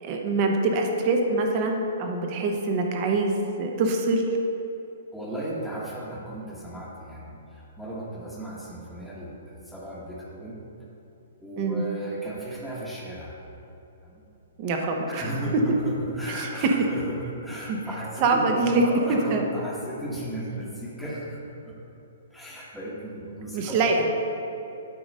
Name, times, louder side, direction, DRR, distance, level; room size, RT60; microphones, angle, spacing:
voice 1, 0.0-4.3 11.6-11.8 14.6-15.3 16.3-16.8 17.7-17.8 18.2-18.8 19.1-19.5 23.5-24.0, right 3 dB, 35° right, 3 dB, 0.8 m, -24 dB
voice 2, 5.1-10.6 11.4-13.3 14.0-14.2 15.1-21.7 22.3-24.1, right 1 dB, ahead, -6 dB, 1.1 m, -35 dB
8.4 x 3.9 x 5.3 m, 2.9 s
hypercardioid pair, 155°, 0 cm